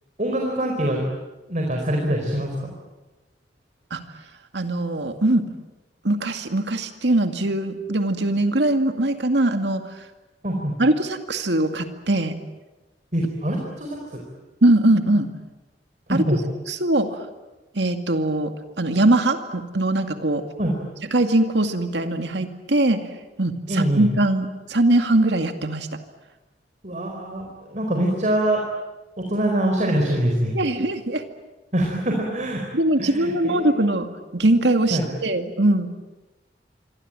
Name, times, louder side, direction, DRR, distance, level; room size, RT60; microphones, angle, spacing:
voice 1, 0.2-1.0 1.5-2.7 10.4-10.7 13.1-14.0 16.1-16.4 20.6-20.7 23.7-24.1 26.8-28.6 29.2-30.5 31.7-32.6 33.0-33.9 34.9-35.1, right 1 dB, 45° right, 1 dB, 4.6 m, -24 dB
voice 2, 4.5-5.5 6.0-9.8 10.8-12.4 14.6-15.3 16.1-16.2 16.7-17.2 17.7-20.4 21.1-23.1 23.4-25.9 30.5-31.2 32.7-34.1 34.3-35.9, right 1 dB, 80° right, 7 dB, 2.3 m, -21 dB
26.5 x 24.5 x 8.9 m, 1.1 s
head